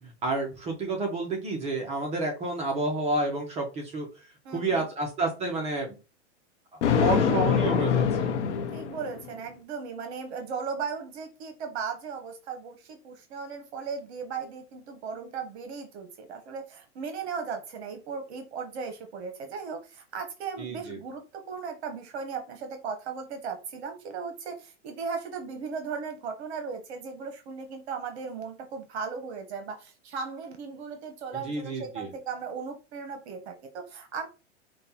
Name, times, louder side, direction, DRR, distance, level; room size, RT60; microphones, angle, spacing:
voice 1, 0.0-4.1 4.5-6.0 7.0-8.3 20.6-21.0 31.4-32.1, right 2 dB, 20° right, 1 dB, 0.6 m, -30 dB
voice 2, 4.4-4.9 8.7-34.3, right 5 dB, 60° right, 6 dB, 0.9 m, -37 dB
Thunder, 6.8-9.3, left 7 dB, 70° left, 0.8 m, -25 dB
5.2 x 2.2 x 2.8 m, 0.31 s
hypercardioid pair, 140°, 36 cm